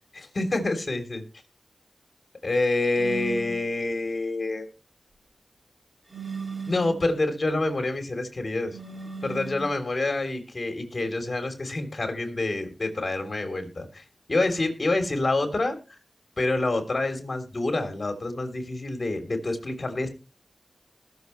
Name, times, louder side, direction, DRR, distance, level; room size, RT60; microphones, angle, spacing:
voice 1, 0.1-1.2 2.4-4.7 6.7-8.8 9.2-15.8 16.4-20.1, left 2 dB, 55° left, 5 dB, 3.3 m, -27 dB
sound 1, 3.0-3.6 6.1-7.1 8.7-9.7, right 5 dB, 35° right, 2.3 m, -36 dB
20.5 x 6.9 x 3.1 m, 0.32 s
cardioid pair, 50°, 0 cm